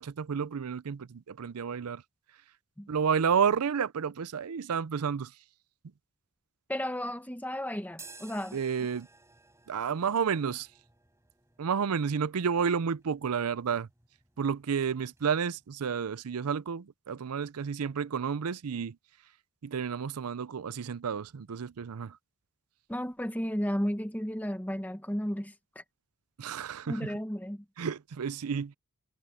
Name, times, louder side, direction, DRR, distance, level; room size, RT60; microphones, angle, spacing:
voice 1, 0.0-2.0 2.9-5.3 8.5-9.1 9.7-10.7 11.6-13.9 14.4-19.0 19.6-22.2 26.4-27.1 27.8-28.7, right 6 dB, 85° right, 0.5 m, -31 dB
voice 2, 6.7-8.6 22.9-25.8 26.9-27.6, equal, 10° left, 1.4 m, -33 dB
sound 1, 7.9-15.7, right 3 dB, 15° right, 4.4 m, -56 dB
head